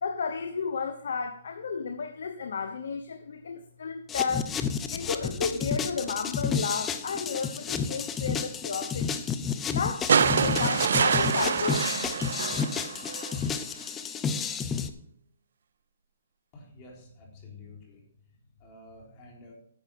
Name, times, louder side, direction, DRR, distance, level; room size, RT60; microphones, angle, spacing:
voice 1, 0.0-4.5 4.9-9.2 9.7-10.1 10.3-11.9, left 5 dB, 75° left, 7 dB, 1.0 m, -32 dB
sound 1, 4.1-14.9, left 6 dB, 15° left, 0.7 m, -31 dB
sound 2, 4.3-6.8, left 4 dB, 50° left, 1.5 m, -43 dB
sound 3, 10.1-13.4 14.7-14.8, right 6 dB, 70° right, 0.6 m, -26 dB
voice 2, 16.5-19.5, left 3 dB, 30° left, -1 dB, 3.7 m, -50 dB
10.5 x 7.5 x 5.4 m, 0.62 s
hypercardioid pair, 150°, 0 cm